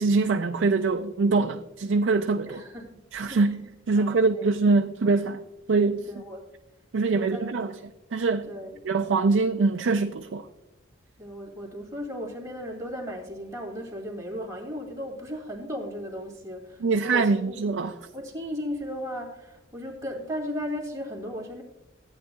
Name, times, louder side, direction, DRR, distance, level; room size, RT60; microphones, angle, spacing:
voice 1, 0.0-2.6 3.1-5.4 5.7-6.1 6.9-7.7 8.1-8.5 8.8-10.5 16.8-17.9, right 3 dB, 65° right, 0.4 m, -24 dB
voice 2, 2.5-3.0 3.2-3.6 4.0-4.8 6.1-6.5 7.1-7.4 8.5-8.8 11.2-17.6 18.1-21.6, equal, 15° right, 2.4 m, -36 dB
15.0 x 9.0 x 2.3 m
head